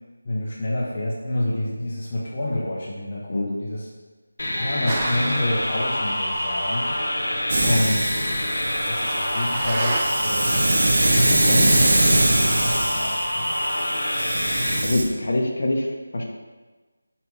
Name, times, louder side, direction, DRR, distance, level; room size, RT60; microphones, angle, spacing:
voice 1, 0.2-3.9 4.5-6.9 7.6-8.2 8.6-13.5, left 1 dB, 30° left, -5 dB, 1.0 m, -28 dB
sound 1, 4.4-14.8, left 1 dB, 70° left, 1.8 m, -26 dB
sound 2, 4.9-10.0, right 2 dB, 20° right, 0.7 m, -34 dB
Hiss, 7.5-15.0, right 1 dB, 45° right, 1.4 m, -23 dB
voice 2, 14.8-16.2, left 1 dB, 45° left, 0 dB, 1.3 m, -24 dB
6.3 x 5.8 x 4.8 m, 1.3 s
figure-of-eight pair, 175°, 0 cm